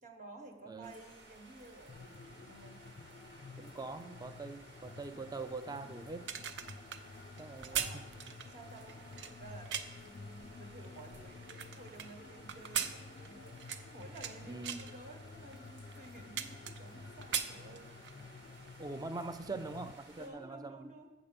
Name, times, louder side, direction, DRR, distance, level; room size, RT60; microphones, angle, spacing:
voice 1, 0.0-2.8 6.9-8.0 8.5-17.9 18.4-18.5 20.2-21.1, right 2 dB, 45° right, 3 dB, 1.1 m, -54 dB
sound 1, 0.8-20.3, right 2 dB, 90° right, 1.8 m, -57 dB
sound 2, 1.9-19.9, left 4 dB, 50° left, 0.4 m, -52 dB
voice 2, 3.6-6.3 7.4-7.9 8.3-8.4 14.5-14.8 17.3-17.4 18.8-20.9, right 3 dB, 20° right, 10 dB, 0.4 m, -43 dB
sound 3, 6.1-10.1 10.7-12.1 12.5-14.3 14.6-14.9 15.5-15.6 15.9-17.0 17.2-18.2 18.6-18.7, right 8 dB, 70° right, 0.5 m, -39 dB
7.8 x 6.9 x 5.1 m, 1.1 s
head